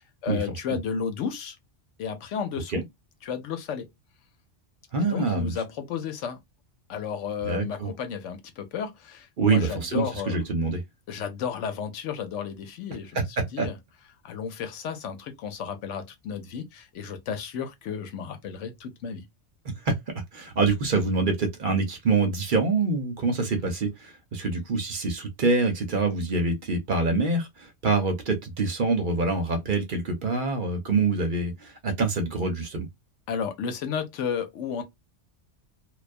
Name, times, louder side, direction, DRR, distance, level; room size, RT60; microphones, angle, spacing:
voice 1, 0.0-1.6 2.0-2.8 3.2-3.9 5.0-6.4 6.9-10.4 11.1-13.8 14.2-19.2 33.3-34.8, left 7 dB, 90° left, 1.0 m, -33 dB
voice 2, 4.9-5.5 7.4-7.9 9.4-10.8 13.1-13.7 19.6-20.0 20.3-32.9, right 3 dB, 55° right, 0.7 m, -25 dB
2.3 x 2.2 x 2.4 m
omnidirectional pair, 1.2 m